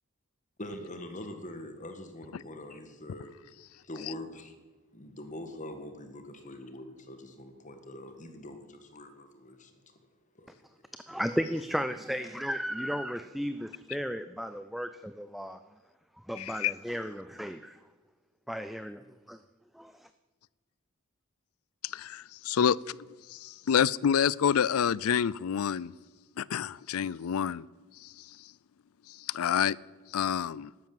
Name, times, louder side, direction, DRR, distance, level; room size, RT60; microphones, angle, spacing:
voice 1, 0.6-3.3 3.7-4.5 4.9-10.0 10.3-10.8, left 1 dB, 35° left, 7 dB, 1.7 m, -44 dB
voice 2, 11.1-15.6 16.2-17.8 18.5-19.4 19.7-20.1, equal, ahead, 11 dB, 0.4 m, -34 dB
voice 3, 16.4-16.7 21.8-25.9 26.4-27.7 28.0-28.3 29.1-29.8 30.1-30.7, left 8 dB, 75° left, 23 dB, 0.4 m, -28 dB
13.0 x 12.0 x 7.8 m, 1.3 s
head